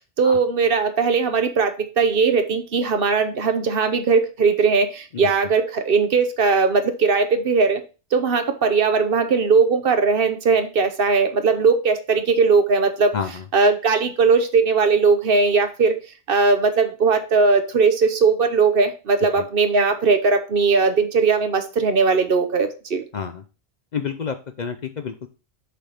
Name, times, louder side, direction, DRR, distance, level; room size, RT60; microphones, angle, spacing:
voice 1, 0.0-7.8 8.1-13.1 13.5-16.0 16.3-23.0, right 4 dB, 60° right, 8 dB, 1.0 m, -19 dB
voice 2, 13.1-13.4 19.4-19.5 23.1-23.4 23.9-25.3, left 6 dB, 50° left, 8 dB, 0.6 m, -29 dB
6.7 x 3.4 x 5.6 m, 0.33 s
omnidirectional pair, 1.1 m